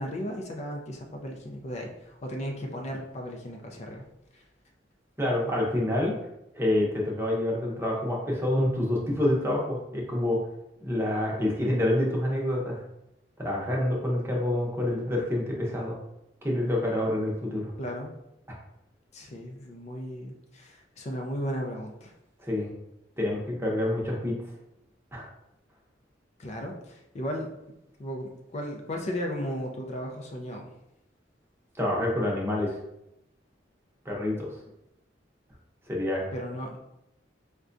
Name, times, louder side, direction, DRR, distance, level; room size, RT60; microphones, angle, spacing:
voice 1, 0.0-4.0 4.3-4.4 17.8-18.1 19.1-22.1 26.4-27.5 28.0-30.7 36.3-36.8, equal, 40° left, 1 dB, 0.4 m, -35 dB
voice 2, 5.2-6.1 6.5-10.4 10.8-12.8 13.4-16.0 16.4-17.7 18.5-18.6 22.4-22.7 23.2-24.3 25.1-25.3 31.8-32.8 34.0-34.6 35.9-36.3, left 1 dB, 15° right, -3 dB, 0.7 m, -27 dB
4.6 x 2.2 x 2.5 m, 0.85 s
head